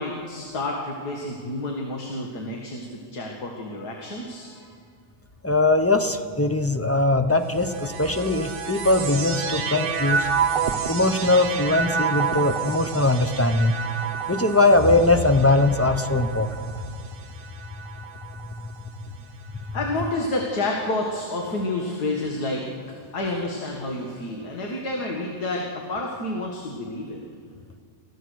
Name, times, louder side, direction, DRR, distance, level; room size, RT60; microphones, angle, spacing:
voice 1, 0.0-4.7 19.7-22.7 23.1-27.2, left 2 dB, 80° left, 0 dB, 2.4 m, -29 dB
voice 2, 5.4-10.3 10.9-13.7 14.3-16.5, left 2 dB, 15° left, 7 dB, 0.6 m, -20 dB
sound 1, 7.5-19.0 19.7-20.5, right 6 dB, 45° right, 0.8 m, -30 dB
29.0 x 15.5 x 6.4 m, 2.2 s
omnidirectional pair, 1.7 m